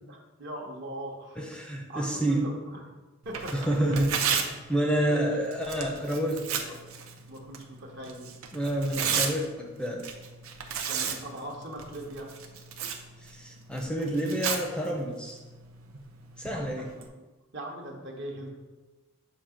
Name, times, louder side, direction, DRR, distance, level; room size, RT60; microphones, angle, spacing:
voice 1, 0.1-1.4 1.9-2.8 3.2-4.0 4.3-4.5 5.1-5.5 6.6-6.7 7.3-8.3 10.9-12.3 16.4-17.0 17.5-18.5, right 1 dB, 55° right, 1 dB, 1.0 m, -40 dB
voice 2, 1.4-2.5 3.5-4.1 4.7-6.4 8.5-10.0 13.2-15.4 16.4-16.9, right 1 dB, 5° left, 0 dB, 0.5 m, -28 dB
Tearing, 3.2-17.1, right 7 dB, 85° right, 0.6 m, -35 dB
7.1 x 2.8 x 5.0 m, 1.2 s
head